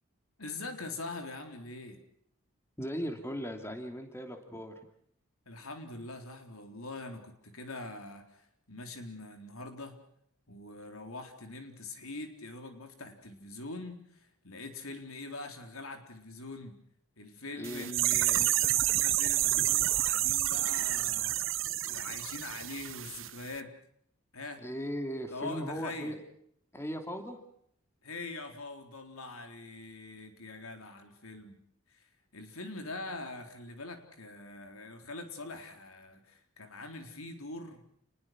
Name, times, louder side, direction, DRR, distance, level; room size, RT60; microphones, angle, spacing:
voice 1, 0.4-2.0 5.5-9.9 10.5-16.8 17.2-23.7 24.3-24.6 25.3-26.2 28.0-31.6 31.9-37.8, left 2 dB, 85° left, 6 dB, 4.1 m, -43 dB
voice 2, 2.8-4.7 17.6-17.9 24.6-26.2 26.7-27.4, equal, 10° left, 5 dB, 2.7 m, -37 dB
sound 1, 17.6-23.3 23.5-23.6, right 14 dB, 65° right, 1.0 m, -29 dB
29.5 x 20.5 x 6.1 m, 0.68 s
head